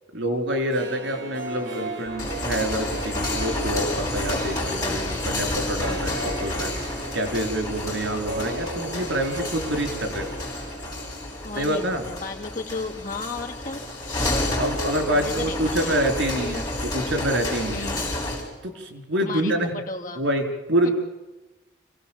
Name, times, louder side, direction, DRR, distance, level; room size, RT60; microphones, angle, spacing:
voice 1, 0.1-10.3 11.5-12.1 14.6-17.9 18.6-19.8 20.2-20.9, right 1 dB, 90° right, 5 dB, 4.3 m, -26 dB
Harp, 0.5-11.6 11.8-11.9, right 2 dB, 75° right, 3.7 m, -37 dB
sound 1, 2.1-18.5, left 1 dB, 20° left, 5.5 m, -30 dB
voice 2, 11.4-13.8 15.1-16.2 17.7-18.1 19.2-20.3, left 3 dB, 45° left, 0 dB, 2.2 m, -34 dB
28.0 x 17.0 x 7.4 m, 1.1 s
head